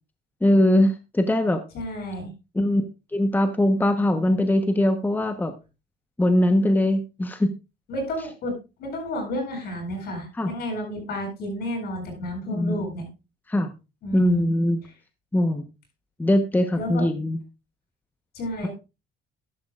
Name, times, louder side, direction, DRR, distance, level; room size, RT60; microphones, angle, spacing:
voice 1, 0.4-1.6 2.5-2.9 3.1-5.5 6.2-7.5 10.4-10.5 12.5-12.8 13.5-13.7 14.1-14.8 15.3-15.6 16.2-17.4, left 1 dB, 10° left, 7 dB, 1.1 m, -21 dB
voice 2, 1.7-2.3 7.9-8.5 8.8-13.1 14.0-14.4 16.8-17.1 18.3-18.7, equal, 70° left, 2 dB, 7.7 m, -31 dB
13.5 x 11.5 x 2.4 m, 0.28 s
cardioid pair, 110°, 17 cm